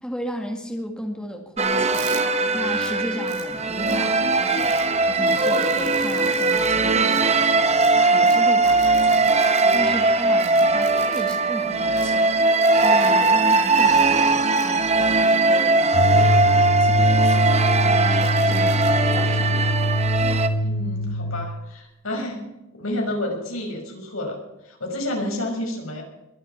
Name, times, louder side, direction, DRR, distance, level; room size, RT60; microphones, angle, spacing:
voice 1, 0.0-2.1 2.5-4.8 5.0-9.4 9.7-12.4 12.7-19.5, equal, 5° left, 2 dB, 2.0 m, -35 dB
sound 1, 1.6-20.5, right 3 dB, 30° right, 1.2 m, -20 dB
sound 2, 1.9-2.2 2.8-2.9 3.3-3.5 3.9-4.0 4.6-4.8 5.3-6.7 7.1-7.2 7.8-7.9 8.3-8.4 8.6-9.8 10.4-11.4 12.0-12.1 12.6-14.0 14.6-14.7 15.3-16.7 17.2-17.8 18.2-18.9, right 8 dB, 80° right, 3.1 m, -41 dB
sound 3, 15.9-21.5, left 1 dB, 40° left, 0.6 m, -23 dB
voice 2, 20.6-22.4 22.7-26.0, left 1 dB, 75° left, 1 dB, 5.9 m, -30 dB
22.0 x 8.1 x 7.2 m, 0.95 s
head